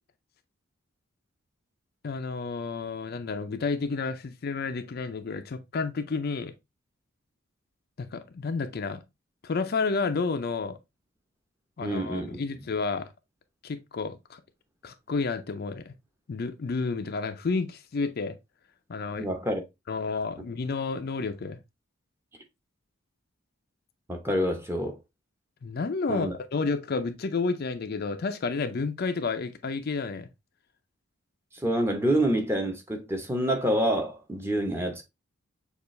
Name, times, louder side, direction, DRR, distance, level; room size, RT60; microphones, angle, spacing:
voice 1, 2.0-6.5 8.0-9.0 9.4-10.8 11.8-13.1 13.6-14.4 14.8-15.9 16.3-18.4 18.9-19.3 19.9-21.6 25.6-30.3, left 4 dB, 50° left, 0.4 m, -30 dB
voice 2, 11.8-12.7 19.2-19.6 24.1-25.0 26.1-26.3 31.5-35.0, right 1 dB, 10° right, 0.8 m, -27 dB
6.7 x 2.4 x 3.1 m
head